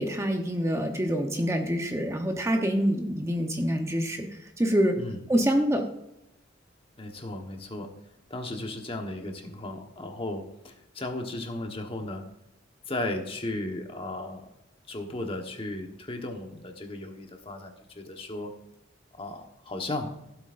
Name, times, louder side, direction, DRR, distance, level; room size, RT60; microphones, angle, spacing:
voice 1, 0.0-5.0 5.3-5.9, equal, 15° right, 4 dB, 0.9 m, -26 dB
voice 2, 7.0-7.9 8.3-12.2 12.9-14.5 14.9-18.5 19.2-20.1, left 2 dB, 30° left, 3 dB, 1.2 m, -35 dB
16.0 x 8.0 x 2.6 m, 0.84 s
head